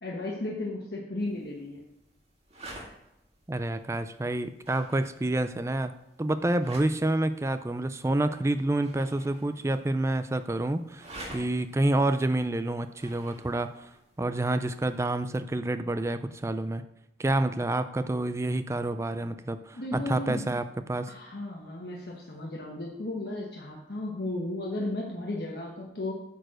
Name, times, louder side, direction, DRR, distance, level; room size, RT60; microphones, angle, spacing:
voice 1, 0.0-1.8 19.8-20.4 21.1-26.1, left 2 dB, 60° left, -2 dB, 1.2 m, -34 dB
sound 1, 1.2-15.0, right 1 dB, 35° right, 2.0 m, -50 dB
voice 2, 3.5-5.9 6.2-11.1 11.3-13.9 14.2-16.8 17.2-21.1, right 1 dB, 15° right, 11 dB, 0.3 m, -28 dB
8.9 x 4.6 x 6.3 m, 0.84 s
head